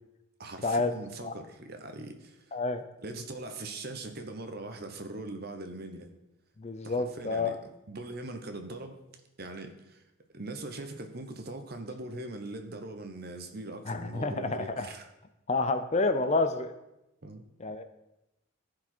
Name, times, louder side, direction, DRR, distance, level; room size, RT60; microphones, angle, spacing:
voice 1, 0.4-2.5 3.0-6.1 6.8-7.6 7.9-9.0 9.4-10.0 10.3-15.1 17.2-17.4, right 2 dB, 45° right, 6 dB, 1.0 m, -41 dB
voice 2, 2.5-2.8 6.6-7.6 13.9-14.9 15.5-16.7 17.6-17.8, left 3 dB, 30° left, 10 dB, 0.5 m, -29 dB
14.5 x 5.0 x 4.4 m, 0.91 s
head